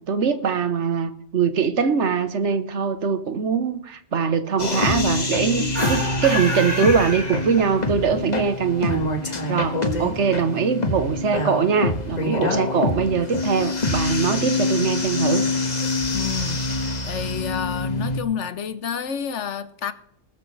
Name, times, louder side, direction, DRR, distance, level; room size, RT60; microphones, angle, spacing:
voice 1, 0.1-9.0 9.5-15.4, right 6 dB, 70° right, 1.4 m, -22 dB
sound 1, 4.6-18.2, left 2 dB, 35° left, 1.5 m, -25 dB
sound 2, 5.7-8.0, left 1 dB, 20° right, 6.7 m, -28 dB
voice 2, 16.1-19.9, left 7 dB, 70° left, 1.2 m, -29 dB
20.0 x 12.5 x 3.3 m
omnidirectional pair, 1.3 m